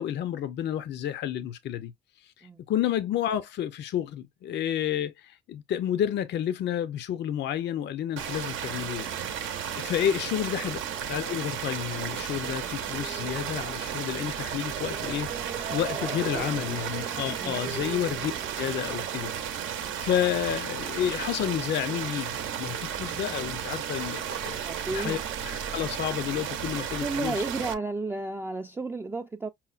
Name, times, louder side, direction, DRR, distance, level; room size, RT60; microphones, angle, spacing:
voice 1, 0.0-1.9 2.2-9.1 9.7-10.8 11.1-15.3 15.7-18.3 18.6-19.3 20.0-24.6 24.9-25.2 25.4-27.3, left 10 dB, 60° left, 0.5 m, -30 dB
sound 1, 8.2-27.7, right 8 dB, 80° right, 0.7 m, -34 dB
voice 2, 9.8-10.1 16.0-16.5 17.4-17.9 24.7-25.2 27.0-29.5, right 3 dB, 10° right, 0.3 m, -33 dB
sound 2, 12.9-19.1, right 7 dB, 40° right, 0.8 m, -40 dB
5.6 x 2.1 x 2.4 m
cardioid pair, 90°, 20 cm